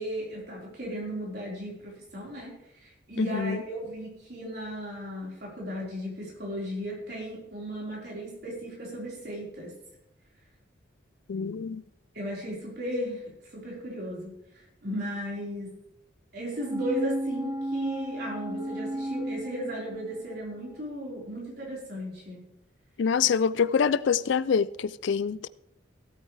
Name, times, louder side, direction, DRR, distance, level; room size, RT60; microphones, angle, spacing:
voice 1, 0.0-2.5 2.8-9.7 12.1-14.3 14.8-15.7 16.3-22.4, equal, 55° right, 4.5 m, -36 dB
voice 2, 3.2-3.6 11.3-11.8 23.0-25.5, left 6 dB, 65° left, 0.4 m, -25 dB
sound 1, 16.6-20.4 20.7-20.8, right 1 dB, 20° right, 0.7 m, -33 dB
16.5 x 8.9 x 3.3 m
head